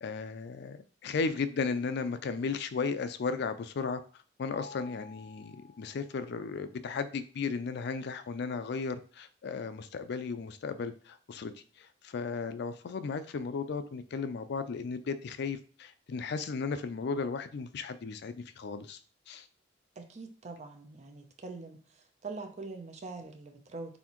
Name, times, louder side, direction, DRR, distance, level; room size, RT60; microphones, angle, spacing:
voice 1, 0.0-4.0 4.4-11.5 11.8-19.0 19.3-19.5, left 4 dB, 60° left, 0.4 m, -35 dB
Mallet percussion, 4.5-6.5, left 4 dB, 5° left, 1.6 m, -51 dB
voice 2, 20.0-21.8 22.2-24.0, right 3 dB, 40° right, 0.5 m, -43 dB
4.2 x 3.5 x 3.0 m
head